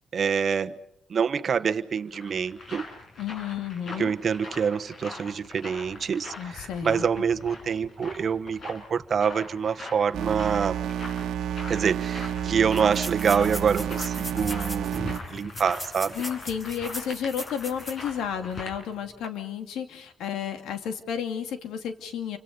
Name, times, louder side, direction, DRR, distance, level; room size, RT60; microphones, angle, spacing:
voice 1, 0.1-0.7 1.1-2.8 4.0-10.8 11.7-16.2, right 6 dB, 50° right, 9 dB, 1.1 m, -26 dB
sound 1, 2.0-18.8, left 3 dB, 50° left, 6.5 m, -42 dB
voice 2, 3.2-4.1 6.4-7.0 16.2-22.4, left 8 dB, 85° left, 7 dB, 2.7 m, -32 dB
sound 2, 10.1-15.2, right 10 dB, 75° right, 1.4 m, -30 dB
sound 3, 11.6-11.7 11.9-12.0 12.7-18.1 18.5-18.6 19.1-19.3, left 1 dB, 25° left, 6.1 m, -39 dB
29.5 x 25.5 x 5.4 m, 0.71 s
cardioid pair, 90°, 0 cm